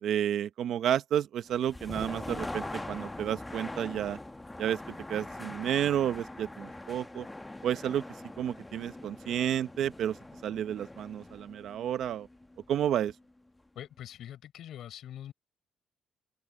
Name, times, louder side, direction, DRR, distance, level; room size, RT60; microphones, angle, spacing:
voice 1, 0.0-4.2 4.6-7.3 7.6-8.0 8.4-10.2 10.4-12.3 12.7-13.1, right 10 dB, 75° right, 1.1 m, -31 dB
sound 1, 1.5-13.3, left 2 dB, 15° left, 1.1 m, -43 dB
voice 2, 13.8-15.3, left 11 dB, 75° left, 5.7 m, -44 dB
cardioid pair, 90°, 0 cm